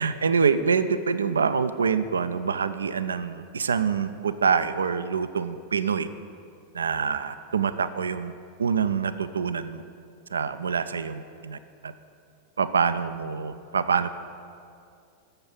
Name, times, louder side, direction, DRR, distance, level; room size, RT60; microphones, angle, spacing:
voice 1, 0.0-6.1 6.7-8.3 8.6-9.8 10.3-11.6 11.8-11.9 12.6-14.1, right 6 dB, 70° right, 12 dB, 0.3 m, -25 dB
6.8 x 6.6 x 7.3 m, 2.4 s
figure-of-eight pair, 90°, 0 cm